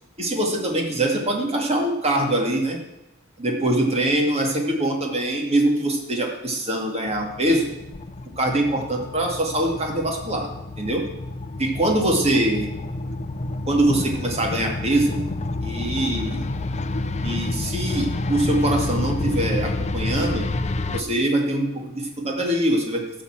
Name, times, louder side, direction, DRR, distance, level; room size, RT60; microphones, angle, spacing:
voice 1, 0.2-2.8 3.4-7.7 8.4-10.5 10.8-11.0 11.6-12.7 13.7-15.2 15.6-16.4 17.2-20.4 20.9-23.0, right 1 dB, 30° right, 1 dB, 2.3 m, -23 dB
sound 1, 7.1-21.0, left 2 dB, 30° left, 0.5 m, -29 dB
15.0 x 5.8 x 7.4 m, 0.94 s
head